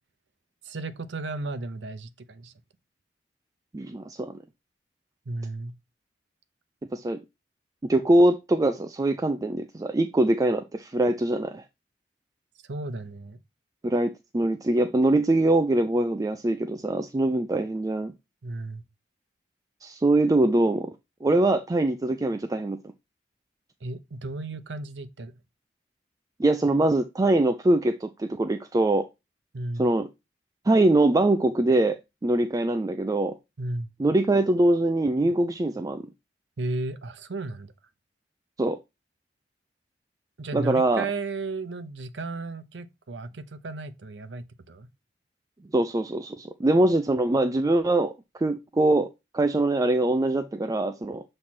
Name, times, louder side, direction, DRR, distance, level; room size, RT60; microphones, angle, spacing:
voice 1, 0.6-2.5 5.3-5.7 12.7-13.4 18.4-18.8 23.8-25.4 29.5-29.9 33.6-33.9 36.6-37.7 40.4-44.9, right 2 dB, 75° right, 0.7 m, -34 dB
voice 2, 3.7-4.4 6.9-7.2 7.8-11.6 13.8-18.1 19.8-20.9 21.2-22.8 26.4-29.1 29.8-30.1 30.7-32.0 32.2-33.4 34.0-36.1 38.6-38.8 40.5-41.1 45.7-51.2, right 2 dB, 20° right, 0.4 m, -23 dB
7.1 x 3.2 x 4.3 m
head